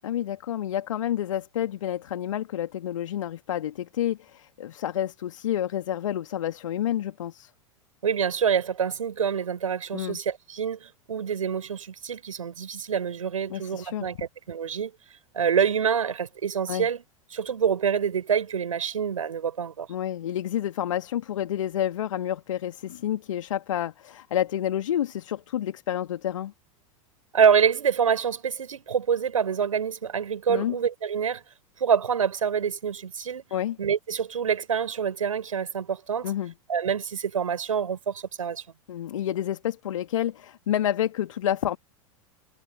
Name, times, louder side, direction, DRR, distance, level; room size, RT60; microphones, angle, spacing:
voice 1, 0.0-7.5 9.9-10.2 13.5-14.1 16.7-16.9 19.9-26.5 30.5-30.8 33.5-33.8 36.2-36.5 38.9-41.8, left 11 dB, 65° left, 2.3 m, -29 dB
voice 2, 8.0-14.9 15.3-17.0 17.3-19.9 27.3-31.4 31.8-33.4 33.8-36.3 36.7-38.6, right 7 dB, 75° right, 6.1 m, -26 dB
figure-of-eight pair, 90°, 18 cm